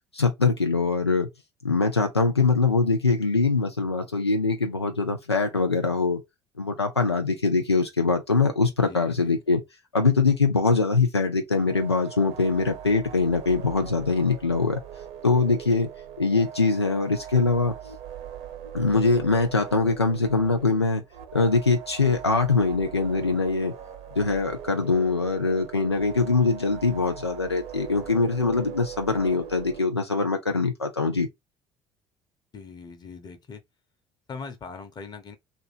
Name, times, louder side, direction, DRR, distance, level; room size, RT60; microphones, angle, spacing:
voice 1, 0.1-1.3 1.6-6.2 6.6-9.6 9.9-14.8 15.2-15.9 16.2-17.7 18.7-21.0 21.3-23.7 24.2-31.3, left 3 dB, 90° left, 0.4 m, -23 dB
voice 2, 8.8-9.4 32.5-33.6 34.3-35.4, left 5 dB, 30° left, 1.0 m, -41 dB
sound 1, 11.5-29.8, right 9 dB, 55° right, 0.7 m, -41 dB
2.8 x 2.3 x 4.1 m
figure-of-eight pair, 55°, 13 cm